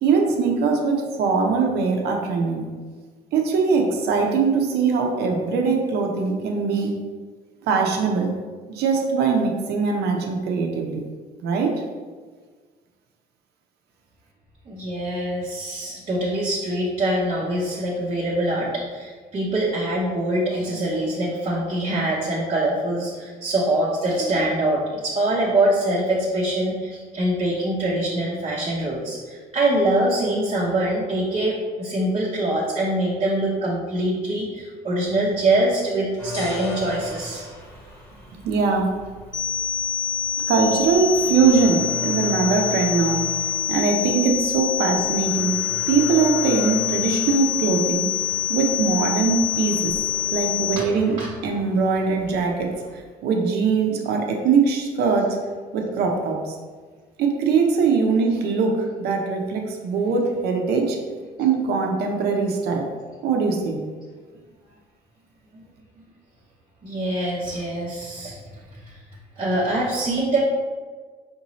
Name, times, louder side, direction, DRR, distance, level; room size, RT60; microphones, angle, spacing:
voice 1, 0.0-2.7 3.3-6.9 7.6-8.3 8.7-11.0 11.4-11.7 38.4-38.9 40.5-43.2 43.7-45.6 45.9-48.1 48.5-50.0 50.3-52.7 53.2-55.4 55.7-56.5 57.2-61.0 61.4-62.8 63.2-63.8, right 5 dB, 75° right, 2 dB, 0.7 m, -21 dB
voice 2, 14.7-37.5 50.8-50.9 51.2-51.3 65.5-65.6 66.8-68.4 68.9-69.0 69.4-70.4, right 1 dB, 35° right, -4 dB, 0.7 m, -24 dB
sound 1, 36.2-53.0, equal, 10° left, 1.1 m, -39 dB
sound 2, 36.3-38.4, left 5 dB, 65° left, 0.7 m, -38 dB
sound 3, 39.3-50.8, left 10 dB, 25° left, 0.5 m, -26 dB
5.2 x 2.8 x 3.0 m, 1.5 s
cardioid pair, 110°, 17 cm